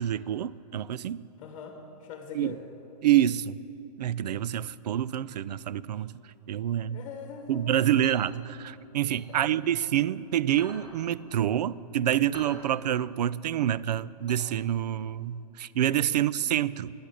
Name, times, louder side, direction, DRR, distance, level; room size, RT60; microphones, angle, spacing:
voice 1, 0.0-1.2 2.3-2.6 3.0-3.6 4.0-6.1 6.5-7.0 7.5-16.9, right 11 dB, 75° right, 20 dB, 0.5 m, -27 dB
voice 2, 1.4-2.6 6.9-8.0 9.3-9.5 16.1-16.3, left 6 dB, 25° left, 4 dB, 1.4 m, -42 dB
sound 1, 8.0-10.1 10.4-15.1, right 1 dB, 20° right, 4.1 m, -48 dB
14.0 x 10.5 x 8.4 m, 2.9 s
hypercardioid pair, 155°, 21 cm